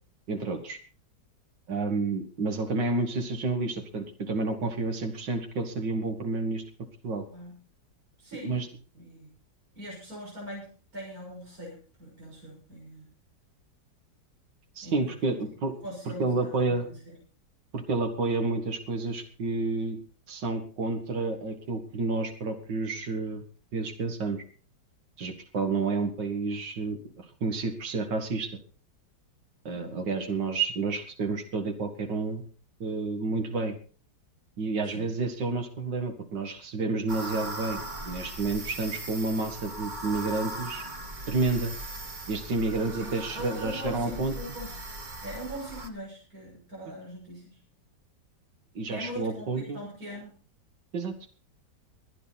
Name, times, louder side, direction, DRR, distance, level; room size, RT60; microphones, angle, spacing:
voice 1, 0.3-0.8 1.7-6.6 7.0-7.2 8.4-8.7 14.8-15.7 16.1-16.9 17.7-20.0 20.3-23.4 23.7-24.4 25.2-28.5 29.6-32.4 32.8-33.8 34.6-40.8 41.3-41.7 42.3-44.4 48.8-49.8 50.9-51.1, right 3 dB, 80° right, 5 dB, 2.5 m, -30 dB
voice 2, 8.2-8.7 8.9-9.3 9.7-13.1 14.8-15.3 15.8-17.2 29.7-30.0 34.8-35.1 42.9-44.7 45.2-47.6 48.9-50.4, equal, 55° right, -3 dB, 7.3 m, -41 dB
sound 1, 37.1-45.9, right 2 dB, 30° right, 1.4 m, -39 dB
24.0 x 9.9 x 4.2 m, 0.39 s
omnidirectional pair, 1.9 m